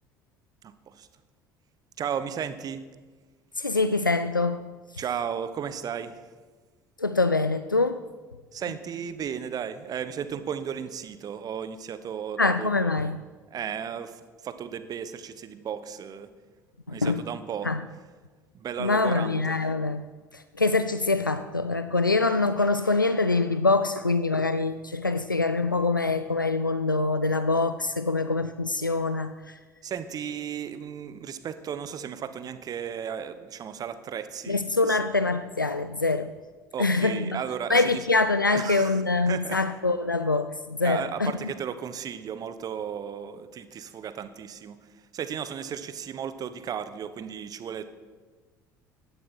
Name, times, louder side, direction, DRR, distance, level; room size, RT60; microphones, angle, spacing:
voice 1, 0.6-1.1 2.0-2.8 5.0-6.3 8.5-13.0 13.5-16.3 16.9-17.7 18.5-19.6 29.8-35.0 36.7-38.0 38.5-39.6 40.8-47.9, right 8 dB, 35° right, 12 dB, 1.1 m, -35 dB
voice 2, 3.6-4.7 7.0-8.0 12.4-13.2 16.9-17.2 17.6-17.8 18.8-20.0 20.3-29.6 34.5-36.3 36.8-37.4 37.7-41.3, left 3 dB, 90° left, 11 dB, 0.4 m, -24 dB
17.0 x 13.5 x 4.5 m, 1.4 s
figure-of-eight pair, 60°, 10 cm